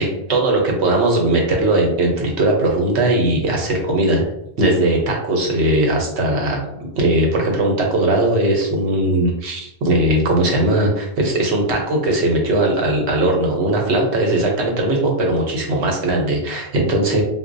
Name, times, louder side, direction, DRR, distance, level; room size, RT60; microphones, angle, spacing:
voice 1, 0.0-4.2 4.6-6.6 7.0-17.2, right 1 dB, 70° right, 1 dB, 1.0 m, -19 dB
4.0 x 2.2 x 2.6 m, 0.80 s
omnidirectional pair, 1.2 m